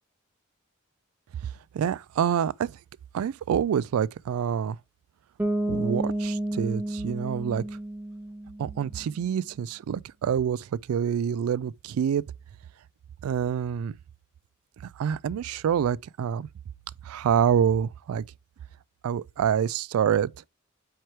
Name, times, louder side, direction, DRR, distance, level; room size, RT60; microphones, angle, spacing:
voice 1, 1.7-2.8 3.1-4.8 5.7-7.6 8.6-12.2 13.2-14.0 15.0-16.5 17.0-18.2 19.0-20.3, right 8 dB, 85° right, 0.3 m, -26 dB
Bass guitar, 5.4-9.1, right 1 dB, 10° right, 0.6 m, -31 dB
4.7 x 4.6 x 4.4 m
head